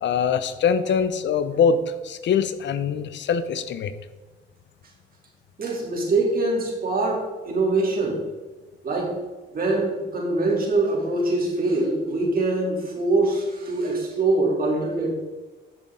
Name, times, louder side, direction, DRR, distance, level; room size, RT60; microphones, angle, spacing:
voice 1, 0.0-3.9, left 6 dB, 65° left, 12 dB, 0.8 m, -23 dB
voice 2, 5.6-8.2 8.8-9.2 9.5-15.1, right 2 dB, 45° right, -1 dB, 3.0 m, -23 dB
10.5 x 7.0 x 3.8 m, 1.3 s
cardioid pair, 90°, 20 cm